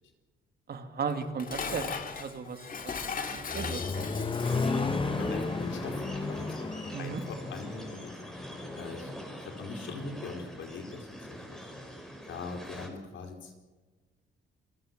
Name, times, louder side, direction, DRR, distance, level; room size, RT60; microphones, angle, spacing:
voice 1, 0.7-1.9 2.2-4.1 6.9-7.2, right 5 dB, 50° right, 8 dB, 2.5 m, -36 dB
Dishes pots and pans, 1.1-4.9, left 5 dB, 45° left, 2.5 m, -38 dB
Accelerating revving vroom, 2.9-8.9, left 4 dB, 25° left, 1.2 m, -34 dB
sound 1, 4.4-12.9, equal, 5° left, 5.3 m, -41 dB
voice 2, 4.8-8.2 8.7-11.7 12.2-13.5, left 3 dB, 75° left, 4 dB, 4.4 m, -42 dB
27.5 x 16.5 x 7.5 m, 1.3 s
cardioid pair, 90°, 20 cm